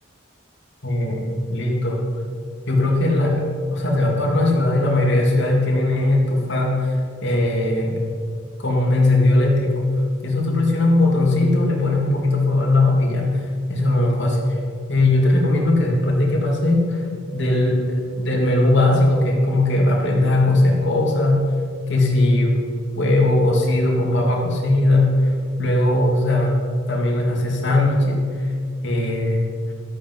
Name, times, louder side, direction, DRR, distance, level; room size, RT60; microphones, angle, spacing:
voice 1, 0.8-2.1 2.7-8.0 8.6-14.6 14.9-17.0 17.3-21.5 21.9-22.7 22.9-26.6 26.9-28.5 28.8-29.5, left 2 dB, 60° left, -1 dB, 2.5 m, -19 dB
13.0 x 8.7 x 5.5 m, 2.2 s
head